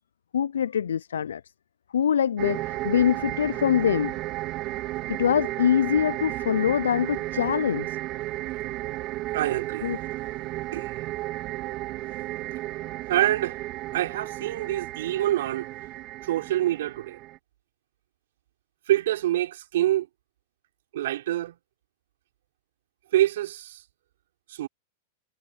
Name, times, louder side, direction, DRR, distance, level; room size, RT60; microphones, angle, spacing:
voice 1, 0.3-1.4 1.9-4.1 5.1-8.0 9.8-10.0, left 8 dB, 80° left, 0.4 m, -24 dB
sound 1, 2.4-17.4, right 17 dB, 40° right, 2.9 m, -33 dB
voice 2, 9.3-9.9 10.7-10.9 13.1-13.6 13.9-15.7 16.2-17.2 18.9-20.1 20.9-21.6 23.1-23.8 24.5-24.7, right 14 dB, 70° right, 4.1 m, -26 dB
hypercardioid pair, 110°, 0 cm